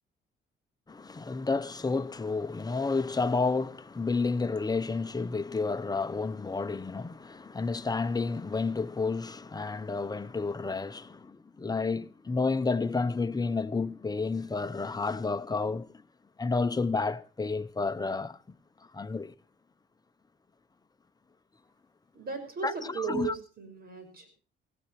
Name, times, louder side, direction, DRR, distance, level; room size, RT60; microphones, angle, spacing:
voice 1, 0.9-15.9 16.4-18.4 18.9-19.3 22.6-23.3, left 4 dB, 20° left, 0.8 m, -30 dB
voice 2, 22.1-24.3, right 6 dB, 50° right, 6.0 m, -36 dB
18.0 x 16.5 x 3.3 m
cardioid pair, 90°, 20 cm